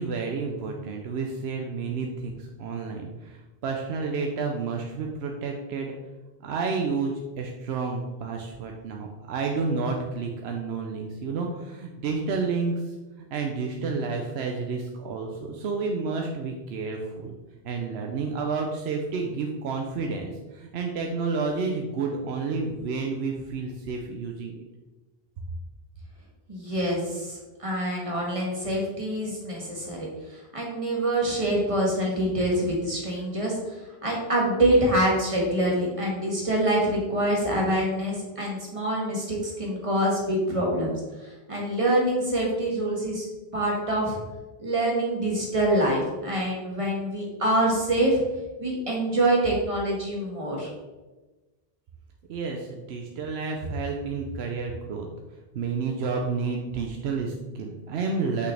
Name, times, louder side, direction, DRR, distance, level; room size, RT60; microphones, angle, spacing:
voice 1, 0.0-5.9 6.4-17.3 17.6-24.5 52.3-55.1 55.5-58.5, right 4 dB, 85° right, 2 dB, 0.9 m, -30 dB
voice 2, 26.5-33.6 34.0-40.9 41.2-43.3 43.5-44.2 44.6-48.2 48.6-50.7, right 1 dB, 30° right, -3 dB, 1.6 m, -25 dB
6.2 x 5.6 x 3.3 m, 1.2 s
omnidirectional pair, 1.1 m